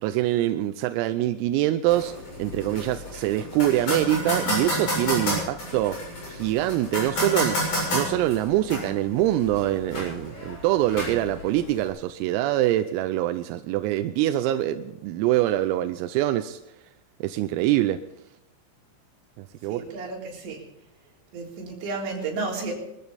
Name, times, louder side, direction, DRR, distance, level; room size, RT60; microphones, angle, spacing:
voice 1, 0.0-2.1 2.4-6.0 6.3-16.6 17.2-18.0 19.4-19.8, right 14 dB, 90° right, 9 dB, 3.4 m, -24 dB
sound 1, 1.9-11.9, equal, 35° left, 8.5 m, -31 dB
voice 2, 19.7-20.6 21.3-22.7, right 3 dB, 60° right, -2 dB, 5.9 m, -32 dB
24.0 x 14.0 x 4.2 m, 0.90 s
omnidirectional pair, 5.9 m